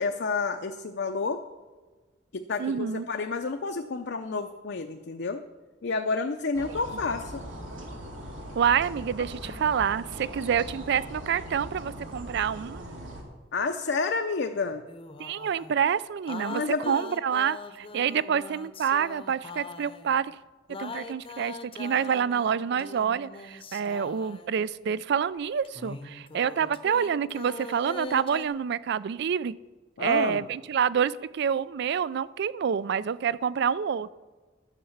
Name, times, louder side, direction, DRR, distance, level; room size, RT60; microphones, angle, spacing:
voice 1, 0.0-1.4 2.3-5.4 5.8-7.4 9.4-9.6 13.5-14.8 16.5-16.9 30.0-30.4, left 4 dB, 65° left, 5 dB, 0.6 m, -30 dB
voice 2, 2.6-3.1 6.7-6.8 8.6-12.9 15.2-20.3 20.8-29.5 30.0-34.1, right 7 dB, 60° right, 19 dB, 0.4 m, -27 dB
sound 1, 6.5-13.2, equal, 85° right, 2.4 m, -40 dB
sound 2, 14.9-15.8 16.3-20.2 20.7-24.6 25.6-28.5, left 3 dB, 30° left, 0.7 m, -42 dB
11.5 x 6.6 x 7.1 m, 1.4 s
head